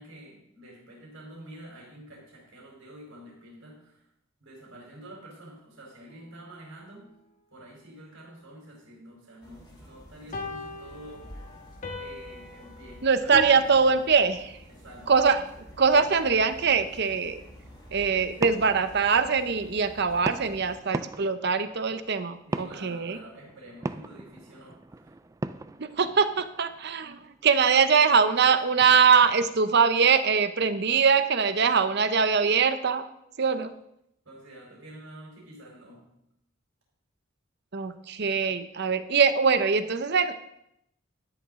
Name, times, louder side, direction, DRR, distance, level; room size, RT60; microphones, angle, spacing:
voice 1, 0.0-4.1 4.4-7.1 7.5-11.4 11.9-14.2 14.7-15.1 22.5-25.2 34.2-36.1, right 1 dB, 70° right, -5 dB, 4.3 m, -48 dB
sound 1, 6.1-6.2 10.3-13.5, left 3 dB, 40° left, 1.5 m, -39 dB
sound 2, 9.4-20.8, equal, 20° left, 2.6 m, -49 dB
voice 2, 13.0-14.5 15.1-15.4 15.8-17.4 17.9-23.2 25.8-33.1 33.4-33.7 37.7-40.3, right 5 dB, 55° right, 11 dB, 0.7 m, -22 dB
sound 3, 17.7-29.8, right 2 dB, 15° right, 0.3 m, -40 dB
13.0 x 10.5 x 3.7 m, 0.78 s
head